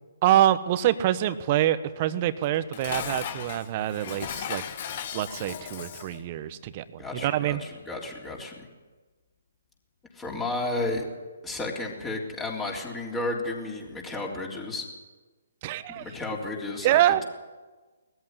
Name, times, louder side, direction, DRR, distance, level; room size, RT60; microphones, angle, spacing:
voice 1, 0.2-4.6 5.1-7.6 15.6-16.0 16.8-17.2, right 12 dB, 35° right, 13 dB, 1.1 m, -25 dB
Dishes pots and pans, 2.4-6.2, left 8 dB, 45° left, 1.6 m, -36 dB
voice 2, 7.0-8.6 10.1-11.1 11.4-14.9 15.9-17.2, left 2 dB, 15° left, -1 dB, 3.6 m, -32 dB
20.0 x 14.5 x 9.7 m, 1.3 s
figure-of-eight pair, 135°, 0 cm